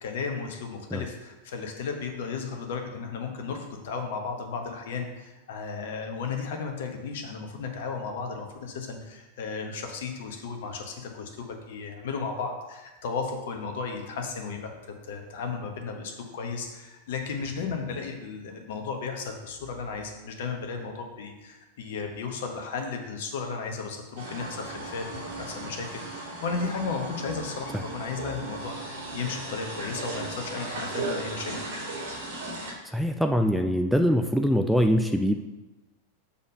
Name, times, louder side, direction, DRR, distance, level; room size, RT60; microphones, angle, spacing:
voice 1, 0.0-14.7 15.1-31.6, left 5 dB, 55° left, 4 dB, 1.2 m, -34 dB
sound 1, 24.2-32.7, right 2 dB, 60° right, 2.5 m, -36 dB
voice 2, 32.9-35.4, equal, ahead, 5 dB, 0.4 m, -23 dB
7.0 x 4.3 x 5.3 m, 1.1 s
figure-of-eight pair, 90°, 0 cm